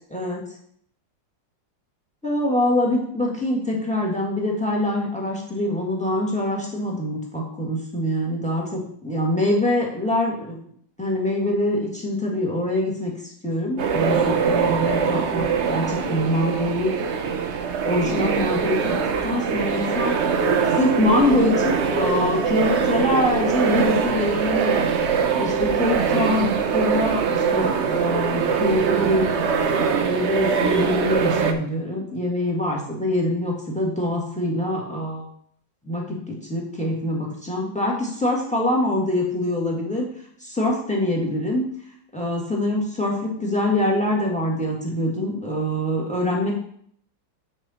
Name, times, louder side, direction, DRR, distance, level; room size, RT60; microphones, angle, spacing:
voice 1, 2.2-10.7 11.0-13.1 13.4-16.9 17.8-19.0 19.2-35.3 35.8-40.1 40.4-41.6 42.1-46.5, left 1 dB, 5° left, -1 dB, 1.6 m, -24 dB
sound 1, 13.8-31.5, right 6 dB, 65° right, 0.6 m, -22 dB
9.1 x 4.8 x 4.2 m, 0.65 s
omnidirectional pair, 2.0 m